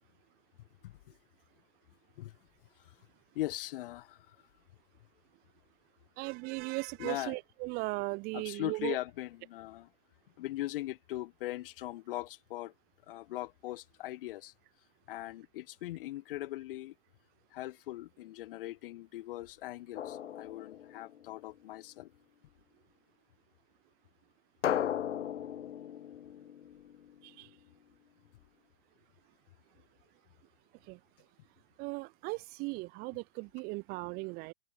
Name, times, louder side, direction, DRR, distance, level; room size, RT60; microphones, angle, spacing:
voice 1, 3.3-4.4 7.0-7.4 8.3-9.9 10.4-12.7 13.1-14.5 15.1-16.9 17.5-22.1, left 16 dB, 50° left, 1.2 m, -40 dB
voice 2, 6.2-9.0 27.2-27.5 30.9-31.0 31.8-34.5, right 26 dB, 25° right, 0.7 m, -37 dB
Drum, 20.0-21.5 24.6-27.4, left 10 dB, 85° left, 0.8 m, -37 dB
hypercardioid pair, 130°, 35 cm